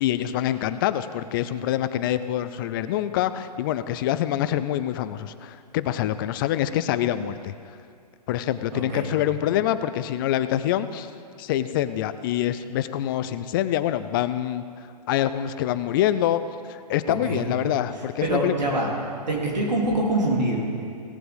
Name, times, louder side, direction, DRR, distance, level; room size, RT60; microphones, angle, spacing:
voice 1, 0.0-7.5 8.3-11.1 11.4-14.6 15.1-16.4 16.7-18.5, left 12 dB, 30° left, 13 dB, 0.5 m, -25 dB
voice 2, 8.7-9.1 17.1-17.4 18.2-18.9 19.3-20.6, right 1 dB, 85° right, -3 dB, 3.5 m, -24 dB
17.0 x 7.7 x 5.2 m, 2.3 s
hypercardioid pair, 130°, 21 cm